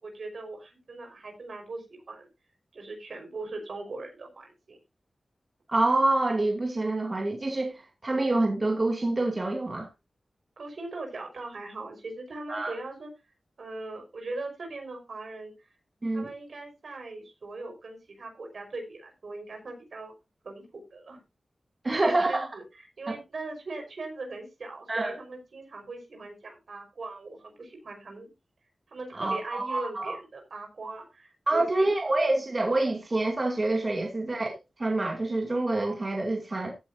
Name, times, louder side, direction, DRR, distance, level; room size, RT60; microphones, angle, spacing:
voice 1, 0.0-2.3 2.7-4.8 10.6-13.1 13.6-15.5 16.1-20.1 20.4-21.2 21.8-28.3 28.9-31.9, right 3 dB, 70° right, 5.3 m, -40 dB
voice 2, 5.7-9.9 12.5-12.7 16.0-16.3 21.8-22.5 23.1-23.2 24.9-25.1 29.1-30.2 31.5-36.7, right 2 dB, 35° right, 2.5 m, -27 dB
15.0 x 9.3 x 2.8 m
wide cardioid pair, 95°, 0 cm